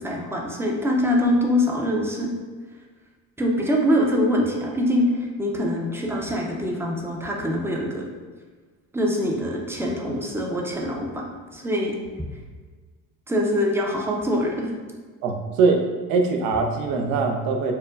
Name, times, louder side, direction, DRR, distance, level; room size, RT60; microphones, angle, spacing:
voice 1, 0.0-2.3 3.4-8.1 8.9-11.2 11.5-11.9 13.3-14.7, equal, 5° right, -1 dB, 0.5 m, -24 dB
voice 2, 15.2-17.7, right 4 dB, 80° right, 4 dB, 0.6 m, -22 dB
4.5 x 2.1 x 2.5 m, 1.5 s
cardioid pair, 105°, 35 cm